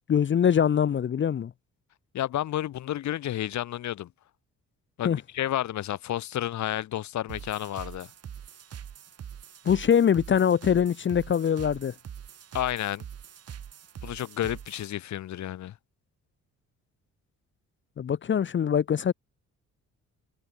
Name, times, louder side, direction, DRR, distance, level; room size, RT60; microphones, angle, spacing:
voice 1, 0.1-1.5 5.0-5.2 9.6-11.9 18.0-19.1, left 8 dB, 40° left, 0.8 m, -23 dB
voice 2, 2.1-4.1 5.0-8.1 12.5-13.0 14.0-15.7, left 12 dB, 70° left, 1.4 m, -31 dB
sound 1, 7.3-14.9, right 8 dB, 55° right, 2.9 m, -43 dB
cardioid pair, 90°, 30 cm